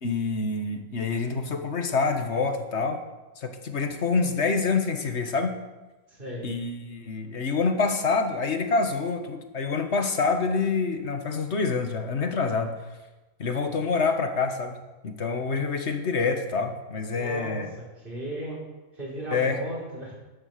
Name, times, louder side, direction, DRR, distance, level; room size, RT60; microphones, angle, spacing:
voice 1, 0.0-3.0 3.4-5.6 6.4-12.8 13.4-14.8 15.0-17.7 19.3-19.6, left 4 dB, 50° left, 6 dB, 1.7 m, -26 dB
voice 2, 6.1-6.4 17.1-17.6 18.0-18.6 19.0-20.1, right 1 dB, 35° right, -5 dB, 5.6 m, -35 dB
13.0 x 11.0 x 6.8 m, 1.1 s
omnidirectional pair, 1.5 m